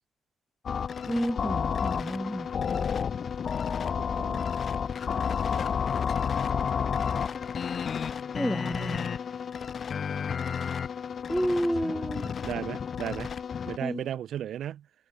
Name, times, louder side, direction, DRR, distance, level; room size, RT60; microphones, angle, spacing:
sound 1, 0.7-13.8, left 7 dB, 50° left, 1.8 m, -31 dB
voice 1, 1.1-2.9 8.3-9.1 11.3-12.3 13.8-14.1, equal, 5° right, 0.8 m, -30 dB
voice 2, 4.2-4.5 12.4-13.3 13.6-14.9, right 10 dB, 70° right, 0.9 m, -35 dB
cardioid pair, 90°, 0 cm